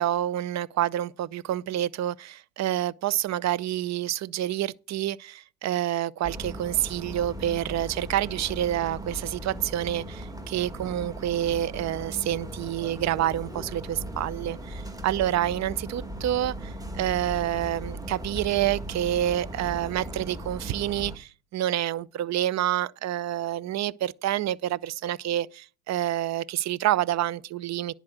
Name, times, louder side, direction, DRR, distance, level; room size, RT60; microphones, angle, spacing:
voice 1, 0.0-27.9, right 12 dB, 45° right, 0.7 m, -28 dB
sound 1, 6.2-21.2, equal, 10° right, 2.1 m, -38 dB
10.5 x 4.9 x 7.8 m
supercardioid pair, 95°, 39 cm